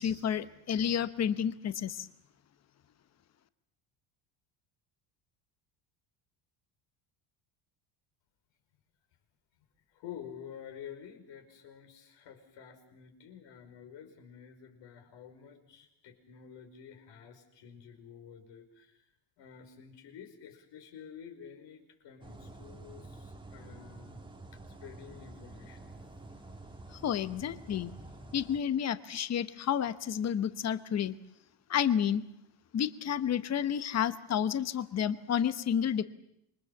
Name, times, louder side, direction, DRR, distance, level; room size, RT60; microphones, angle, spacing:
voice 1, 0.0-2.1 27.0-27.9 28.3-31.1 31.7-32.2 32.7-36.0, left 9 dB, 35° left, 13 dB, 1.1 m, -30 dB
voice 2, 9.9-19.0 19.4-24.2 24.8-25.9, left 8 dB, 65° left, 4 dB, 5.3 m, -50 dB
sound 1, 22.2-28.6, right 2 dB, 10° right, 1.6 m, -49 dB
27.0 x 23.0 x 7.2 m, 0.78 s
cardioid pair, 145°, 46 cm